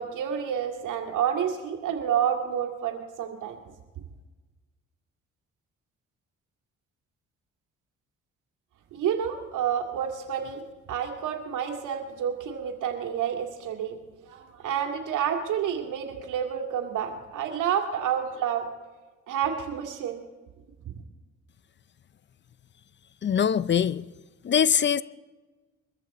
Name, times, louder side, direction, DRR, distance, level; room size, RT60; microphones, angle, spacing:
voice 1, 0.0-3.6 8.9-10.6 10.9-14.0 14.3-18.7 18.9-19.0 19.3-20.2, right 8 dB, 85° right, 2.3 m, -29 dB
voice 2, 23.2-24.0 24.4-25.0, left 8 dB, 40° left, 0.5 m, -22 dB
23.0 x 14.5 x 4.2 m
cardioid pair, 90°, 30 cm